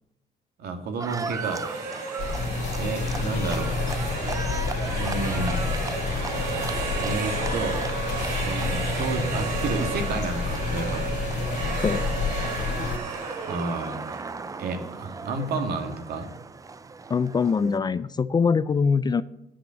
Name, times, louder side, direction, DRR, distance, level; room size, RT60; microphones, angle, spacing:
voice 1, 0.6-1.6 2.8-3.7 4.9-5.7 7.0-7.8 8.3-11.1 13.5-14.0 14.6-16.3, right 4 dB, 65° right, 5 dB, 2.2 m, -31 dB
Livestock farm animals working animals, 1.0-17.8, right 4 dB, 20° right, 0.6 m, -38 dB
sound 1, 1.1-15.0, right 5 dB, 85° right, 4.0 m, -34 dB
sound 2, 2.2-13.0, left 4 dB, 75° left, 3.0 m, -29 dB
voice 2, 17.1-19.2, left 5 dB, 25° left, 16 dB, 0.4 m, -23 dB
10.0 x 8.9 x 7.7 m, 0.86 s
cardioid pair, 110°, 17 cm